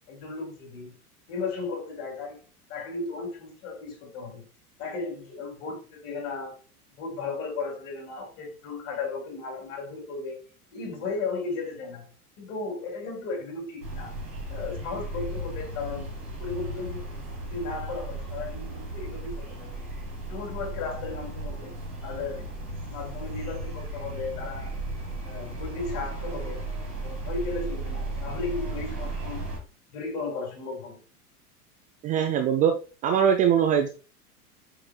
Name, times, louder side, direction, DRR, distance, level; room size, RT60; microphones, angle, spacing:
voice 1, 0.1-0.9 1.3-2.4 2.7-4.5 4.8-6.6 7.0-10.4 10.7-12.1 12.4-14.1 14.5-16.1 16.4-17.1 17.4-19.9 20.3-21.7 22.0-22.4 22.9-24.8 25.2-26.6 27.0-29.5 29.9-31.0, left 4 dB, 55° left, 2.8 m, -35 dB
sound 1, 13.8-29.6, right 2 dB, 90° right, 1.8 m, -35 dB
voice 2, 32.0-32.7 33.0-33.9, right 8 dB, 20° right, 0.4 m, -21 dB
8.4 x 4.9 x 2.3 m
figure-of-eight pair, 85°, 46 cm